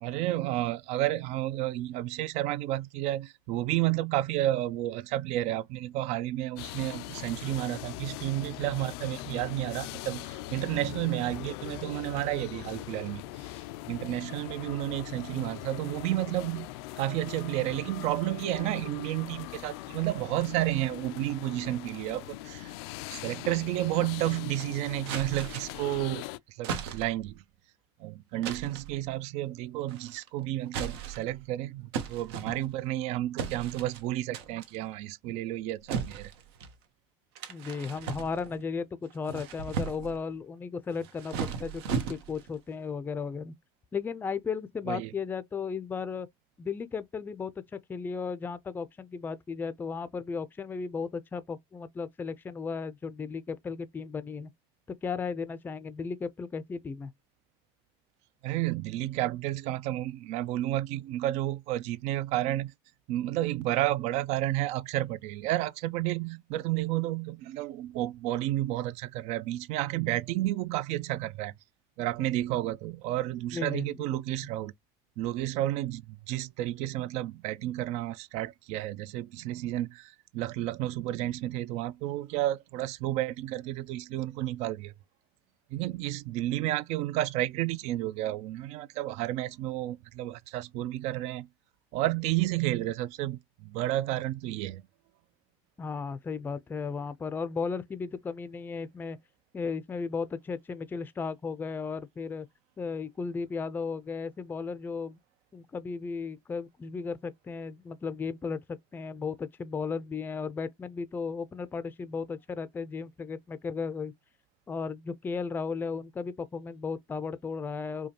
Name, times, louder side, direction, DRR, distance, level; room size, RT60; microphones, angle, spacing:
voice 1, 0.0-13.2 13.9-16.7 17.0-22.7 23.1-26.2 26.6-27.4 28.0-36.3 44.9-45.1 58.4-62.7 63.1-71.5 72.0-74.7 75.2-84.9 85.7-91.5 91.9-94.8, right 15 dB, 60° right, 0.4 m, -31 dB
sound 1, 6.6-26.4, left 17 dB, 80° left, 0.4 m, -41 dB
sound 2, 25.1-25.9 26.6-27.3 28.4-28.9 29.9-30.3 30.7-31.4 31.9-32.9 33.4-34.0 34.3-34.8 35.9-36.8 37.4-38.6 39.1-40.2 40.9-42.5, right 7 dB, 85° right, 1.0 m, -36 dB
voice 2, 37.5-43.5 43.9-46.3 46.6-54.5 54.9-57.1 73.5-74.4 95.8-99.2 99.5-102.5 102.8-105.2 105.5-108.6 108.9-114.1 114.7-118.1, left 5 dB, 15° left, 0.4 m, -35 dB
5.1 x 2.2 x 2.8 m
supercardioid pair, 135°, 13 cm